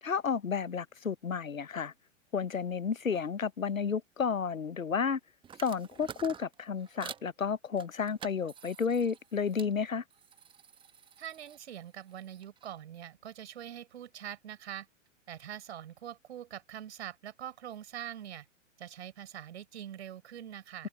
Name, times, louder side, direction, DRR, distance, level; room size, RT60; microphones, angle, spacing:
voice 1, 0.0-1.9 2.3-5.2 5.6-10.0, left 6 dB, 85° left, 0.9 m, -32 dB
sound 1, 5.4-7.3 7.8-9.7 10.1-12.7, right 8 dB, 10° right, 1.3 m, -49 dB
voice 2, 11.2-14.9 15.3-18.5 18.8-20.9, right 10 dB, 55° right, 4.7 m, -44 dB
figure-of-eight pair, 110°, 39 cm